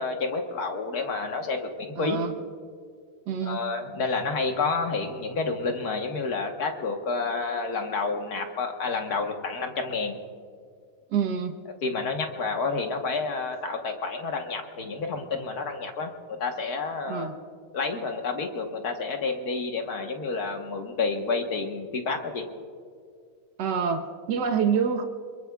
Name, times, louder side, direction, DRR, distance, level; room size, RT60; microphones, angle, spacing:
voice 1, 0.0-2.2 3.4-10.2 11.8-16.1 16.4-17.3 17.7-22.4, left 4 dB, 50° left, 4 dB, 1.7 m, -29 dB
voice 2, 2.0-2.3 3.3-3.6 11.1-11.5 17.1-17.3 23.6-25.1, right 6 dB, 60° right, 5 dB, 1.6 m, -26 dB
27.0 x 22.0 x 2.4 m, 2.1 s
omnidirectional pair, 2.3 m